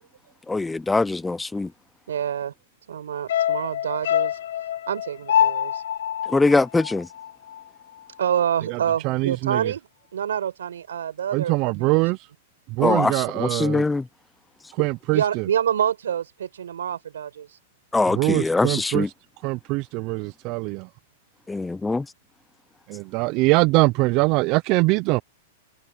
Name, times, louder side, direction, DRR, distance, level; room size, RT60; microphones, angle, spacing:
voice 1, 0.5-1.7 6.3-7.1 12.8-14.0 17.9-19.1 21.5-22.0, left 3 dB, 10° left, 0.5 m, -22 dB
voice 2, 2.1-2.5 2.9-4.4 4.9-5.8 8.2-12.1 15.1-17.5, right 9 dB, 85° right, 5.5 m, -27 dB
sound 1, 3.3-7.7 8.0-8.1, left 10 dB, 75° left, 1.2 m, -25 dB
voice 3, 9.0-9.6 11.3-12.2 12.8-13.8 14.8-15.4 18.2-19.0 19.4-20.9 22.9-25.2, right 24 dB, 45° right, 0.6 m, -22 dB
hypercardioid pair, 125°, 0 cm